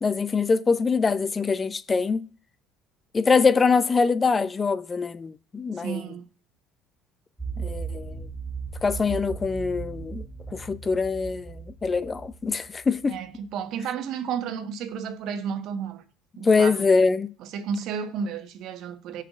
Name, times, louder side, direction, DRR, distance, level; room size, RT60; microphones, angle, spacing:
voice 1, 0.0-2.3 3.1-6.0 7.6-8.3 8.8-10.2 10.5-13.2 16.4-17.3, left 4 dB, 30° left, 0.6 m, -23 dB
voice 2, 5.7-6.3 13.1-16.0 16.4-16.9 17.4-19.2, right 7 dB, 65° right, 1.2 m, -32 dB
sound 1, 7.4-13.2, right 5 dB, 10° right, 1.9 m, -37 dB
17.5 x 6.6 x 2.5 m
hypercardioid pair, 70°, 0 cm